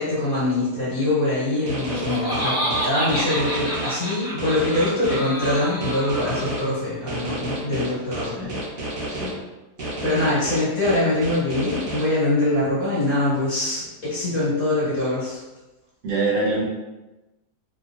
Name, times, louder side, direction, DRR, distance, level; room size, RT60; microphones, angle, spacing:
voice 1, 0.0-8.4 10.0-15.4, left 2 dB, 55° left, -11 dB, 1.7 m, -23 dB
Laughter, 1.6-6.8, equal, 25° left, 1.3 m, -29 dB
sound 1, 1.7-3.9 4.4-6.6 7.1-9.3 9.8-12.0, right 1 dB, 35° right, 1.2 m, -30 dB
voice 2, 9.1-9.4 16.0-16.6, right 3 dB, 55° right, -5 dB, 1.1 m, -25 dB
2.9 x 2.9 x 2.3 m, 1.1 s
omnidirectional pair, 1.8 m